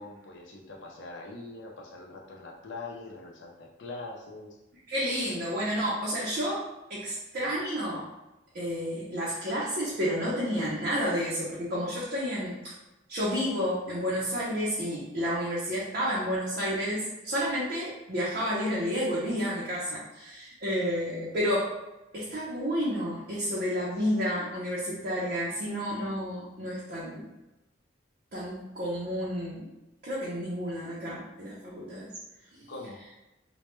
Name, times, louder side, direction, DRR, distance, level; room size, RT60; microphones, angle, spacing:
voice 1, 0.0-4.6 32.7-33.0, left 3 dB, 70° left, 0 dB, 0.5 m, -43 dB
voice 2, 4.9-8.1 8.5-12.7 13.1-21.7 22.1-27.3 28.3-29.7 30.0-32.1 32.6-32.7, equal, 50° right, -8 dB, 0.6 m, -31 dB
2.1 x 2.1 x 3.0 m, 1.0 s
head